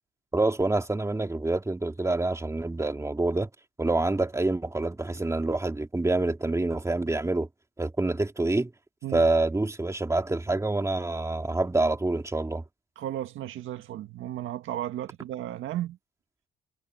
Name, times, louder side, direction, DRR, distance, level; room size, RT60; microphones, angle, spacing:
voice 1, 0.3-3.5 3.8-7.5 7.8-8.7 9.1-12.6, right 2 dB, 15° right, 2.7 m, -26 dB
voice 2, 13.0-16.0, right 12 dB, 85° right, 1.7 m, -34 dB
cardioid pair, 90°, 20 cm